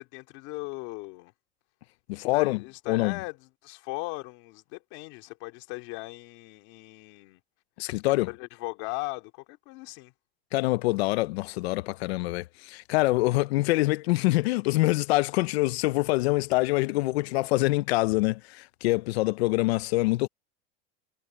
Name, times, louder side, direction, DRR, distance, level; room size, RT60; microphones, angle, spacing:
voice 1, 0.0-1.3 2.1-7.4 8.0-10.1, left 24 dB, 55° left, 2.8 m, -38 dB
voice 2, 2.1-3.2 7.8-8.3 10.5-20.3, left 20 dB, 85° left, 0.7 m, -25 dB
supercardioid pair, 160°, 31 cm